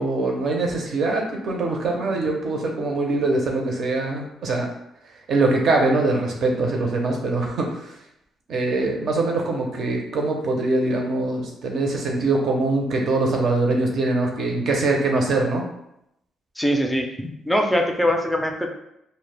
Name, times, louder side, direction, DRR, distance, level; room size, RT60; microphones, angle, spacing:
voice 1, 0.0-4.7 5.3-8.0 8.5-15.7, right 2 dB, 65° right, 1 dB, 0.6 m, -23 dB
voice 2, 16.6-18.7, equal, 5° left, 2 dB, 0.4 m, -23 dB
2.1 x 2.0 x 3.3 m, 0.80 s
cardioid pair, 90°, 0 cm